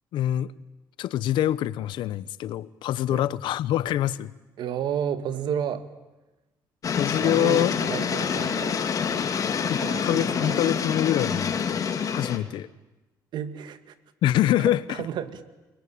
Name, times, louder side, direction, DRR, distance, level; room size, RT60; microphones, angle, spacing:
voice 1, 0.1-0.5 1.0-4.3 7.0-7.7 9.7-11.8 12.1-12.7 14.2-15.0, left 12 dB, 80° left, 18 dB, 0.9 m, -25 dB
voice 2, 4.6-5.9 7.2-8.8 9.6-10.6 13.3-13.9 14.7-15.4, right 9 dB, 70° right, 11 dB, 2.0 m, -32 dB
sound 1, 6.8-12.4, left 6 dB, 45° left, 2.4 m, -27 dB
30.0 x 22.0 x 8.6 m, 1.1 s
cardioid pair, 110°, 8 cm